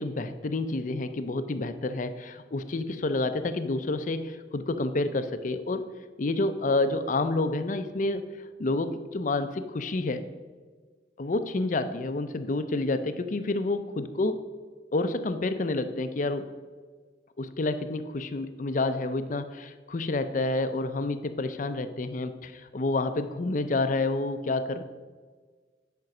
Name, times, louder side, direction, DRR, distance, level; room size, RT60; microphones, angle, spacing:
voice 1, 0.0-5.9 6.2-8.3 8.6-10.3 11.2-14.4 14.9-16.5 17.4-24.8, left 2 dB, 45° left, 10 dB, 0.5 m, -29 dB
9.2 x 5.3 x 5.9 m, 1.5 s
head